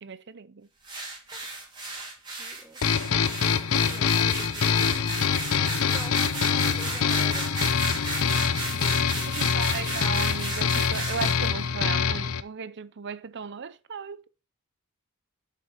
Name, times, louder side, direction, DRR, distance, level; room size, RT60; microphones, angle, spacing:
voice 1, 0.0-0.7 9.3-14.3, right 6 dB, 55° right, 0.6 m, -36 dB
sound 1, 0.8-11.5, right 3 dB, 20° right, 3.3 m, -35 dB
voice 2, 2.4-3.3 3.6-5.2 5.8-6.2 6.5-7.6 8.7-9.4, equal, 5° right, 1.1 m, -48 dB
sound 2, 2.8-12.4, left 6 dB, 80° left, 0.7 m, -25 dB
7.7 x 6.3 x 4.1 m
head